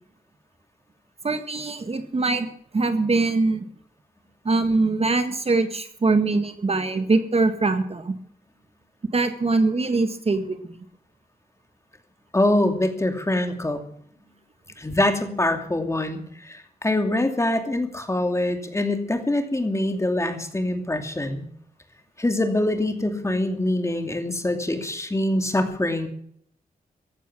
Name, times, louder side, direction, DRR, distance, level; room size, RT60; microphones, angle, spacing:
voice 1, 1.2-2.5 2.7-3.6 4.4-8.1 9.1-10.7, right 3 dB, 40° right, 8 dB, 1.6 m, -22 dB
voice 2, 12.3-13.8 14.8-21.5 22.2-26.1, left 1 dB, 20° left, 5 dB, 2.7 m, -24 dB
15.5 x 11.5 x 6.2 m, 0.65 s
wide cardioid pair, 95°, 16 cm